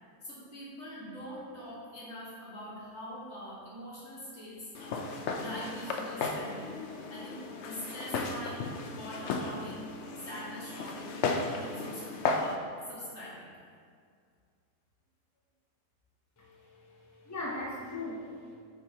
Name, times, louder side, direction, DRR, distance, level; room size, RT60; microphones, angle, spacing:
voice 1, 0.2-6.8 7.1-9.9 10.2-12.6 12.9-13.5, equal, 40° left, -7 dB, 2.1 m, -43 dB
Walk footsteps, 4.7-12.6, left 3 dB, 75° left, 0.6 m, -35 dB
voice 2, 16.4-18.5, left 2 dB, 20° left, -4 dB, 0.4 m, -40 dB
8.4 x 5.9 x 2.9 m, 2.1 s
omnidirectional pair, 1.8 m